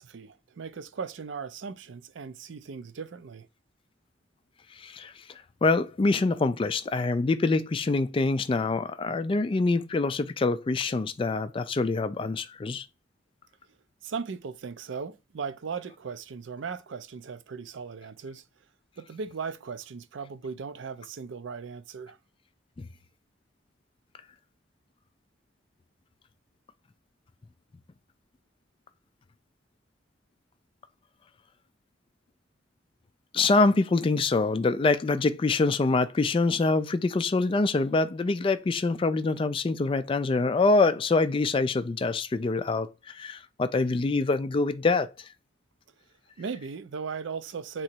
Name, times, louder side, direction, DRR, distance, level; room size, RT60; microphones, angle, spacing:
voice 1, 0.0-3.5 14.0-18.5 19.0-22.2 46.4-47.8, right 5 dB, 75° right, 0.5 m, -37 dB
voice 2, 4.8-12.9 22.8-22.9 33.3-45.3, left 3 dB, 25° left, 0.3 m, -25 dB
3.8 x 3.1 x 4.4 m
head